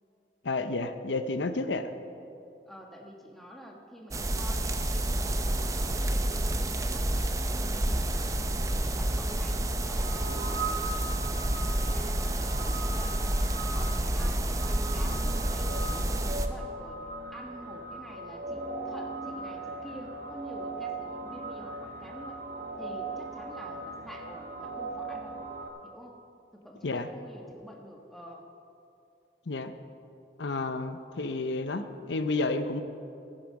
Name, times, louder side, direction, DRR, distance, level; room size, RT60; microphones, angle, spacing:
voice 1, 0.4-1.9 26.8-27.1 29.5-29.7 30.4-32.8, left 3 dB, 85° left, 10 dB, 0.7 m, -31 dB
voice 2, 2.7-8.1 8.9-11.2 11.8-13.2 13.7-17.0 17.3-22.4 22.8-25.4 25.8-26.2 26.5-28.5, equal, ahead, 0 dB, 1.3 m, -47 dB
sound 1, 4.1-16.5, right 1 dB, 20° right, 0.6 m, -29 dB
sound 2, 9.9-25.7, right 3 dB, 45° right, 1.2 m, -39 dB
15.5 x 10.5 x 5.3 m, 2.7 s
head